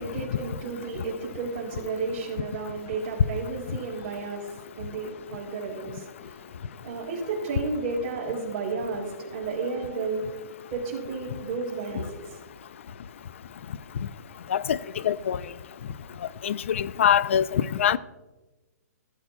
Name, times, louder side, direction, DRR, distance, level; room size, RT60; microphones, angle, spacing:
voice 1, 0.0-6.5 6.8-10.2 10.7-12.2, right 4 dB, 25° right, 3.2 m, -32 dB
voice 2, 15.0-15.4 16.4-18.0, left 9 dB, 50° left, 0.3 m, -23 dB
16.0 x 8.0 x 2.3 m
hypercardioid pair, 175°, 9 cm